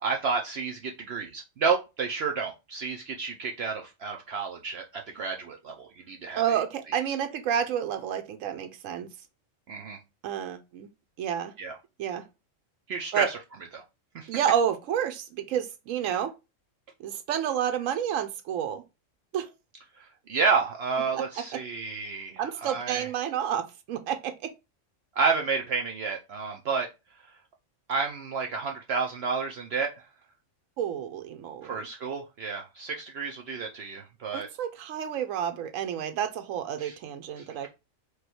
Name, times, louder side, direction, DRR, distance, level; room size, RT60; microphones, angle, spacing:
voice 1, 0.0-6.4 9.7-10.0 11.6-11.8 12.9-13.4 13.7-13.8 14.1-14.3 20.0-23.1 25.2-26.9 27.9-29.9 31.6-34.5 36.8-36.9 37.4-37.5, right 5 dB, 60° right, 0.8 m, -30 dB
voice 2, 6.4-9.1 10.2-10.9 11.2-11.5 12.0-12.2 13.1-13.3 14.3-16.3 17.0-18.8 19.3-19.5 21.1-21.2 22.4-24.5 30.8-31.8 34.3-37.7, right 9 dB, 85° right, 1.0 m, -30 dB
4.8 x 2.3 x 4.4 m
omnidirectional pair, 1.3 m